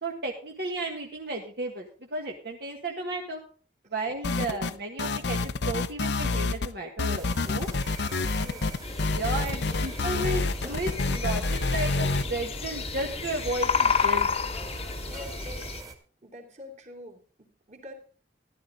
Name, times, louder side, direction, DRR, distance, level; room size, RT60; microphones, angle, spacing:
voice 1, 0.0-3.4 3.9-5.4 5.7-7.7 9.1-14.3, right 2 dB, 65° right, 0 dB, 1.8 m, -33 dB
sound 1, 4.2-4.7 5.0-6.7 7.0-12.2, left 3 dB, 65° left, 0.7 m, -28 dB
sound 2, 7.1-15.9, right 3 dB, 20° right, 1.8 m, -44 dB
voice 2, 8.4-8.8 9.3-9.8 15.1-15.7 16.2-17.9, equal, 40° right, 2 dB, 2.9 m, -45 dB
sound 3, 8.8-15.8, left 5 dB, 35° left, 1.0 m, -31 dB
14.5 x 11.5 x 3.9 m, 0.38 s
head